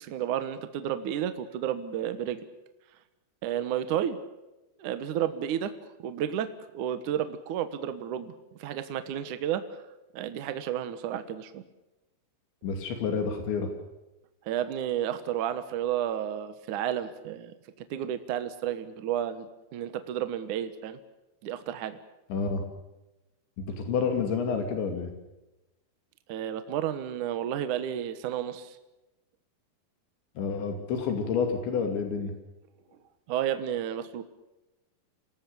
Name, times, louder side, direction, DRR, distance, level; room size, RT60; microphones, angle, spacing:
voice 1, 0.0-2.4 3.4-4.2 4.8-5.7 6.0-6.5 6.7-8.3 8.6-9.8 10.1-11.6 14.5-17.5 17.9-21.0 21.4-22.0 26.3-28.8 33.3-34.2, right 10 dB, 65° right, 10 dB, 2.0 m, -31 dB
voice 2, 12.6-13.7 22.3-22.6 23.6-25.1 30.4-32.3, left 5 dB, 75° left, 6 dB, 4.8 m, -29 dB
28.0 x 18.5 x 7.0 m, 1.0 s
omnidirectional pair, 5.2 m